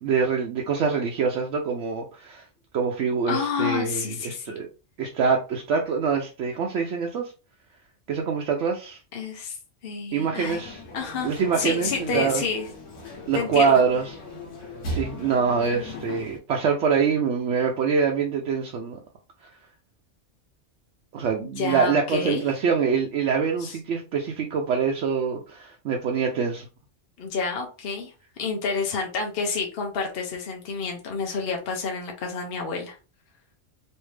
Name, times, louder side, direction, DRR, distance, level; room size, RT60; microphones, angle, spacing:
voice 1, 0.0-2.4 2.7-4.7 5.0-7.3 8.1-9.0 10.1-10.8 11.2-12.4 13.3-14.0 14.9-19.0 21.1-26.7, right 6 dB, 75° right, 0.9 m, -24 dB
voice 2, 3.3-4.5 9.1-9.6 9.8-10.6 10.9-12.7 13.3-13.8 21.4-22.4 23.6-23.8 27.2-28.1 28.4-33.0, left 5 dB, 55° left, 0.9 m, -29 dB
sound 1, 10.4-16.4, left 1 dB, 85° left, 1.4 m, -37 dB
3.2 x 2.7 x 3.2 m
omnidirectional pair, 1.3 m